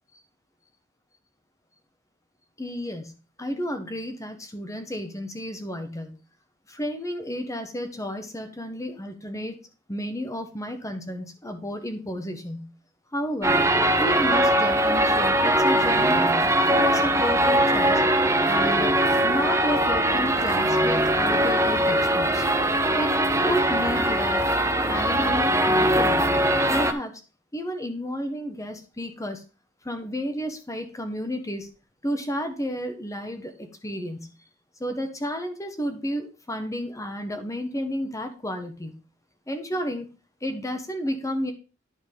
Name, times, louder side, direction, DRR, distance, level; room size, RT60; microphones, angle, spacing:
voice 1, 2.6-6.1 6.7-9.6 9.9-12.7 13.1-13.6 14.0-16.3 16.7-18.0 18.5-19.0 19.2-22.4 22.9-26.3 26.7-27.2 27.5-29.4 29.8-31.7 32.0-34.3 34.8-39.0 39.5-40.1 40.4-41.5, equal, 15° left, 6 dB, 1.3 m, -31 dB
sound 1, 13.4-26.9, right 1 dB, 15° right, 0.7 m, -21 dB
10.0 x 4.4 x 5.2 m, 0.33 s
head